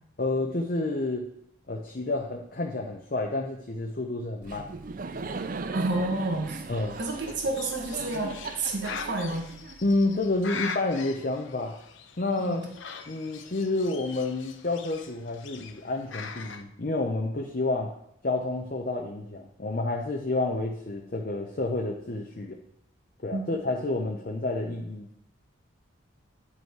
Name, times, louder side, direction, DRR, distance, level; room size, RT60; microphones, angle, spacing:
voice 1, 0.2-1.3 1.7-4.7 6.7-7.0 9.8-11.8 12.2-12.6 13.1-17.9 18.2-22.6 23.2-25.1, left 2 dB, 45° left, 1 dB, 0.7 m, -29 dB
Laughter, 4.4-10.3, right 3 dB, 45° right, 0.5 m, -38 dB
voice 2, 5.7-6.6 7.0-9.5 12.4-12.7 23.3-23.4, right 2 dB, 65° right, 1 dB, 1.5 m, -30 dB
Bird, 6.7-16.6, left 6 dB, 75° left, 0.7 m, -42 dB
9.6 x 5.5 x 4.6 m, 0.73 s
head